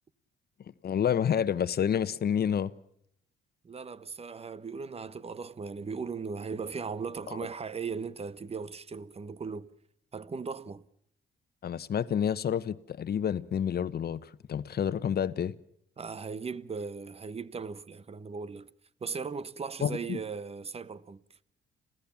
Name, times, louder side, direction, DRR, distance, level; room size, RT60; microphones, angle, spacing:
voice 1, 0.8-2.7 7.3-7.4 11.6-15.5 19.8-20.2, left 8 dB, 50° left, 1.1 m, -29 dB
voice 2, 3.6-9.7 10.1-10.8 16.0-18.7 19.0-21.2, right 5 dB, 30° right, 1.1 m, -38 dB
27.5 x 16.5 x 7.2 m
cardioid pair, 90°, 20 cm